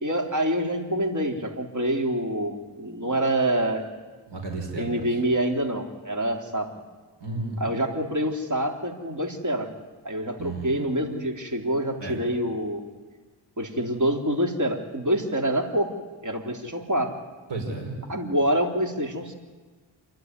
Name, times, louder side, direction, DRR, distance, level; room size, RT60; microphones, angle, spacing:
voice 1, 0.0-3.9 4.8-6.7 7.6-9.7 10.0-12.8 13.6-15.9 16.2-17.1 18.1-19.3, right 1 dB, 40° right, 2 dB, 3.6 m, -26 dB
voice 2, 4.3-5.1 7.2-7.8 10.4-10.9 12.0-12.2 17.5-18.0, right 2 dB, 60° right, 1 dB, 5.0 m, -33 dB
28.5 x 11.5 x 9.7 m, 1.4 s
cardioid pair, 70°, 47 cm